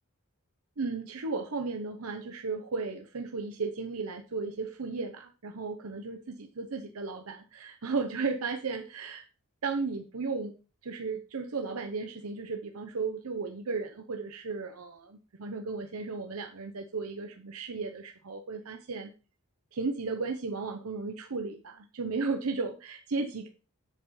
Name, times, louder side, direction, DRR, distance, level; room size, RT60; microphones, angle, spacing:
voice 1, 0.8-9.2 9.6-10.5 10.8-19.1 19.7-23.5, right 4 dB, 80° right, 5 dB, 0.8 m, -35 dB
7.6 x 7.6 x 3.1 m, 0.34 s
head